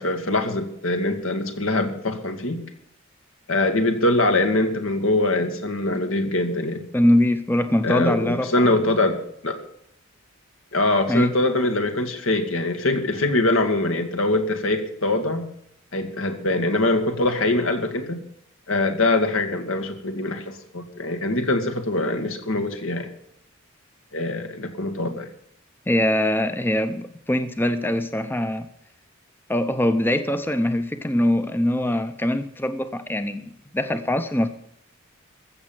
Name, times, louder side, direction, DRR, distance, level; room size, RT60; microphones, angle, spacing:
voice 1, 0.0-2.6 3.5-6.8 7.8-9.6 10.7-15.4 15.9-18.2 18.7-23.1 24.1-25.3, left 2 dB, 80° left, 2.0 m, -23 dB
voice 2, 6.9-8.8 11.1-11.3 25.0-25.1 25.9-28.7 29.5-34.5, left 1 dB, 10° left, 0.7 m, -23 dB
15.0 x 7.3 x 9.1 m
head